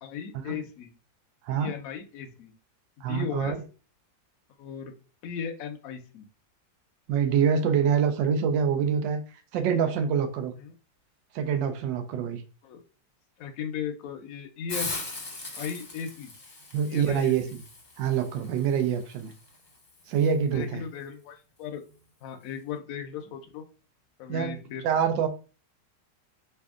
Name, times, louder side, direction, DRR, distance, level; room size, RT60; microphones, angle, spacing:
voice 1, 0.0-0.9 1.5-2.5 3.0-3.6 4.6-4.9 5.2-6.3 10.6-10.7 12.6-12.8 13.4-15.0 15.5-16.3 16.9-17.3 20.5-21.8 22.2-23.6 24.2-24.8, left 7 dB, 65° left, 0.9 m, -36 dB
voice 2, 1.4-1.8 3.0-3.6 7.1-9.2 9.5-10.5 11.3-12.4 16.7-17.6 18.0-19.3 20.1-20.8 24.3-25.3, right 7 dB, 90° right, 1.3 m, -25 dB
Hiss, 14.7-20.3, left 2 dB, 35° left, 0.8 m, -40 dB
3.4 x 2.6 x 3.5 m
omnidirectional pair, 1.9 m